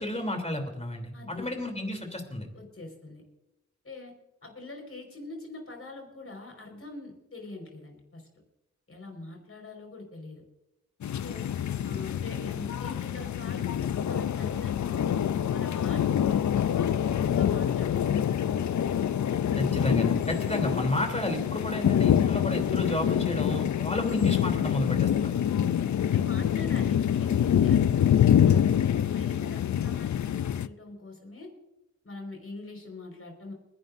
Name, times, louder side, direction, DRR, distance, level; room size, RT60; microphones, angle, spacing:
voice 1, 0.0-2.5 19.5-25.3, left 1 dB, 20° left, 4 dB, 3.2 m, -31 dB
voice 2, 1.1-1.5 2.5-3.2 3.8-4.1 4.4-8.3 8.9-10.4 11.2-11.5 11.8-15.2 15.5-18.3 19.6-19.9 20.2-20.5 26.1-31.5 32.0-33.5, left 2 dB, 50° left, 2 dB, 5.0 m, -44 dB
sound 1, 11.0-30.7, left 9 dB, 70° left, 0.5 m, -26 dB
29.0 x 11.0 x 2.6 m, 0.90 s
wide cardioid pair, 75°, 30 cm